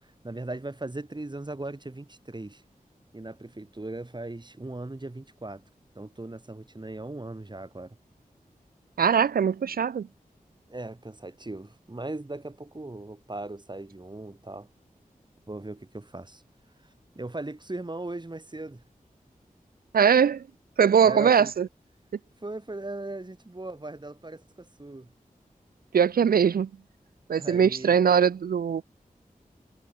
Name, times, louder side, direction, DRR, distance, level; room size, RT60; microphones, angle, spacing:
voice 1, 0.0-2.6 3.1-5.6 5.9-8.0 10.7-14.7 15.5-16.4 16.8-18.8 21.0-21.5 22.4-25.1 27.4-28.0, right 2 dB, 30° right, 2.4 m, -38 dB
voice 2, 9.0-10.1 19.9-20.4 20.8-21.7 25.9-26.7 27.3-28.8, right 7 dB, 85° right, 0.4 m, -21 dB
wide cardioid pair, 55°, 15 cm